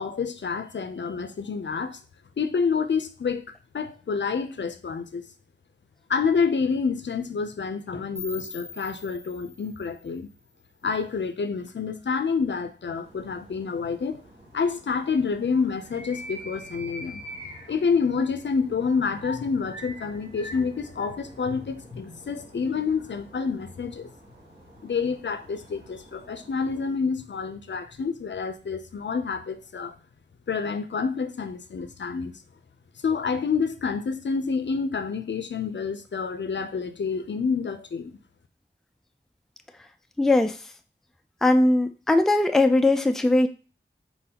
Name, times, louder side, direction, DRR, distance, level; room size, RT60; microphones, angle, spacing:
voice 1, 0.0-2.0 2.4-3.4 3.7-5.3 6.1-10.3 10.8-14.2 14.5-17.2 17.7-24.1 24.8-30.0 30.5-32.4 33.0-38.2, left 5 dB, 70° left, 9 dB, 0.5 m, -28 dB
sound 1, 8.2-11.1, left 2 dB, 50° right, 1.4 m, -43 dB
sound 2, 13.0-27.0, equal, 65° right, 1.9 m, -45 dB
voice 2, 40.2-40.6 41.4-43.5, left 2 dB, ahead, 8 dB, 0.3 m, -20 dB
4.2 x 3.8 x 2.8 m, 0.35 s
wide cardioid pair, 75°, 20 cm